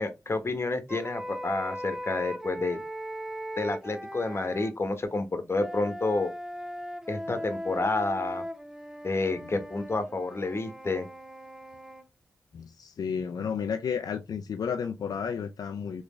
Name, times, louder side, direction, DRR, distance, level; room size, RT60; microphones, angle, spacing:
voice 1, 0.0-2.8 3.6-6.3 7.1-8.4 9.0-11.1, left 3 dB, 40° left, 1.1 m, -29 dB
sound 1, 0.9-4.7 5.5-12.1, equal, 10° right, 0.6 m, -38 dB
voice 2, 12.5-16.0, left 6 dB, 75° left, 0.4 m, -32 dB
3.4 x 3.2 x 3.1 m
cardioid pair, 45°, 7 cm